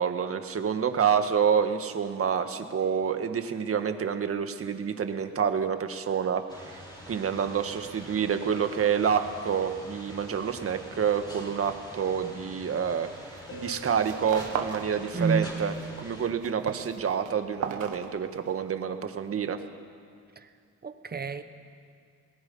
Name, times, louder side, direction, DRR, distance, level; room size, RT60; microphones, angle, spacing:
voice 1, 0.0-13.1 13.5-19.6, right 7 dB, 50° right, 7 dB, 1.7 m, -28 dB
sound 1, 6.5-16.3, equal, 15° left, 5.8 m, -46 dB
sound 2, 13.2-13.5 13.7-14.9 15.2-15.9 16.2-18.7, right 7 dB, 75° right, 1.7 m, -36 dB
Harp, 13.5-16.0 19.5-19.6, left 1 dB, 50° left, 4.3 m, -48 dB
voice 2, 15.1-15.5 20.8-21.4, right 4 dB, 30° right, 9 dB, 1.4 m, -28 dB
26.5 x 19.0 x 5.6 m, 2.2 s
cardioid pair, 90°, 30 cm